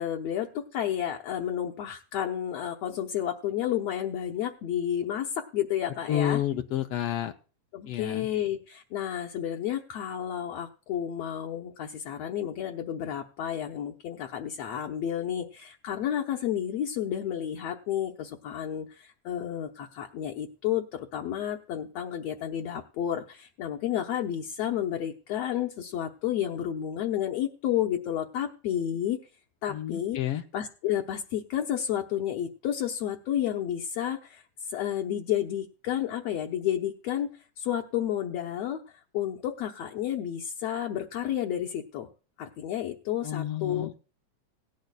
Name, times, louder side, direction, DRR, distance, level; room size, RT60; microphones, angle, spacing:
voice 1, 0.0-6.4 7.7-29.2 29.6-30.2 30.5-42.1 42.4-43.9, left 10 dB, 70° left, 2 dB, 1.7 m, -31 dB
voice 2, 6.1-7.3 7.8-8.3 29.7-30.4 43.2-43.9, left 11 dB, 90° left, 5 dB, 1.3 m, -30 dB
18.0 x 10.5 x 2.3 m, 0.34 s
omnidirectional pair, 3.6 m